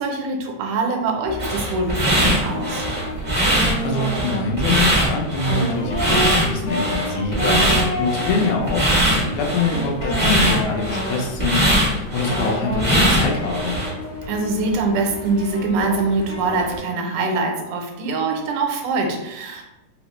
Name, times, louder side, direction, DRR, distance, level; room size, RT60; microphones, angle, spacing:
voice 1, 0.0-2.9 14.3-19.6, right 3 dB, 85° right, 3 dB, 2.1 m, -23 dB
sound 1, 1.2-16.8, left 1 dB, 65° left, 1.7 m, -30 dB
sound 2, 1.4-13.9, right 1 dB, 60° right, 0.4 m, -21 dB
voice 2, 3.3-13.8, left 3 dB, 80° left, 0 dB, 2.1 m, -25 dB
4.9 x 2.0 x 3.0 m, 0.95 s
omnidirectional pair, 3.5 m